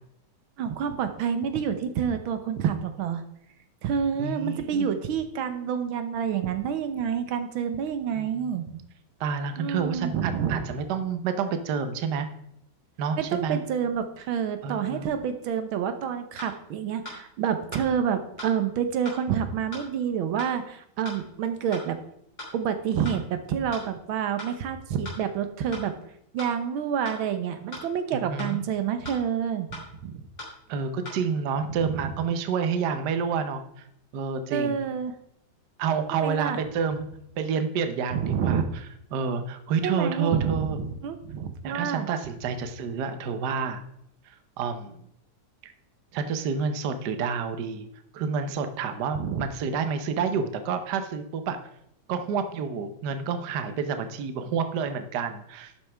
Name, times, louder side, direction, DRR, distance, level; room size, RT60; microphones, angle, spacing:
voice 1, 0.6-3.2 3.8-8.7 9.6-10.7 13.2-22.0 22.5-25.9 26.3-30.3 31.7-32.1 34.5-35.1 36.1-36.6 38.1-38.6 39.8-42.1 49.1-49.5, right 8 dB, 80° right, 9 dB, 1.7 m, -28 dB
voice 2, 4.2-4.9 8.1-8.8 9.2-12.3 13.0-13.6 14.6-15.1 28.1-28.6 30.7-33.8 34.1-34.8 35.8-37.1 37.4-38.8 39.1-40.8 41.6-43.8 44.3-45.0 45.6-45.7 46.1-47.9 48.1-51.6 52.1-55.7, right 6 dB, 60° right, 8 dB, 1.4 m, -29 dB
sound 1, 16.4-16.5 17.0-17.2 17.7-17.9 18.4-18.5 19.1-19.2 19.7-19.9 20.4-20.5 21.0-21.2 21.7-21.9 22.4-22.5 23.1-23.2 23.7-23.9 24.4-24.5 25.0-25.2 25.7-25.9 26.4-26.5 27.1-27.2 27.7-27.9 28.4-28.5 29.0-29.2 29.7-29.9 30.4-30.5 31.1-31.2, left 1 dB, 60° left, 4.2 m, -38 dB
12.0 x 8.5 x 3.4 m, 0.74 s
omnidirectional pair, 2.2 m